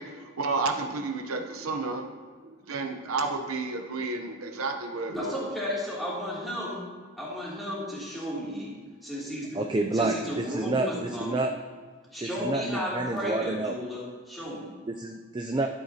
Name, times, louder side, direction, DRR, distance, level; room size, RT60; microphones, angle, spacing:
voice 1, 0.0-2.1 2.4-5.3, right 3 dB, 75° right, 4 dB, 0.8 m, -31 dB
voice 2, 5.1-6.8 7.2-8.7 9.0-9.6 9.9-11.4 12.1-14.7, equal, ahead, -8 dB, 2.7 m, -33 dB
voice 3, 9.5-11.5 12.2-13.8 14.9-15.7, right 2 dB, 20° right, 3 dB, 0.3 m, -29 dB
13.0 x 7.8 x 2.8 m, 1.5 s
head